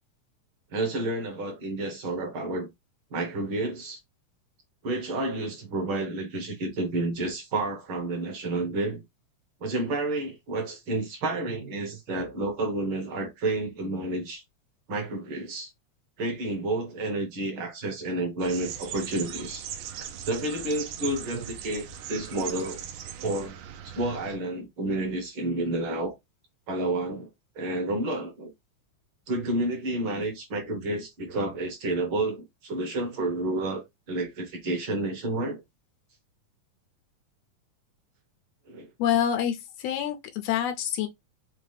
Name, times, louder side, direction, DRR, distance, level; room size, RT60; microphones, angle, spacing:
voice 1, 0.7-2.7 3.1-4.0 4.8-9.0 9.6-14.4 14.9-15.7 16.2-19.7 20.0-22.8 23.2-23.6 23.8-26.1 26.7-27.3 27.5-28.5 29.3-35.6 38.7-38.9, right 2 dB, 55° right, 1.5 m, -30 dB
sound 1, 18.4-24.4, right 9 dB, 90° right, 2.3 m, -39 dB
voice 2, 39.0-41.1, left 9 dB, 90° left, 1.4 m, -27 dB
5.8 x 2.3 x 3.2 m
omnidirectional pair, 3.5 m